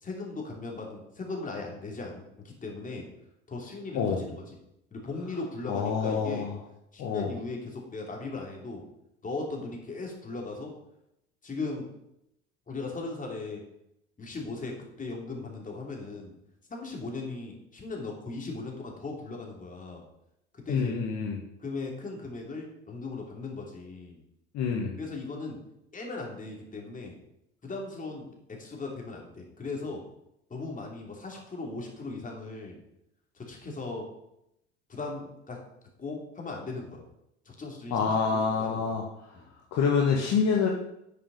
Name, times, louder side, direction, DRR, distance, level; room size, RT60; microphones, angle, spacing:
voice 1, 0.0-3.1 3.5-4.4 4.9-6.5 6.9-8.9 9.2-10.7 11.4-11.9 12.7-13.6 14.2-16.3 16.7-20.0 20.5-21.0 21.6-24.2 24.6-25.6 25.9-27.2 27.6-30.1 30.5-32.8 33.3-34.1 34.9-35.6 36.0-37.0 37.4-38.9 39.3-39.5, left 3 dB, 20° left, 0 dB, 3.0 m, -38 dB
voice 2, 5.7-6.5 7.0-7.3 20.7-21.4 24.5-25.0 37.9-39.0 39.7-40.7, left 5 dB, 45° left, 0 dB, 1.4 m, -26 dB
9.2 x 6.9 x 5.3 m, 0.81 s
figure-of-eight pair, 65°, 36 cm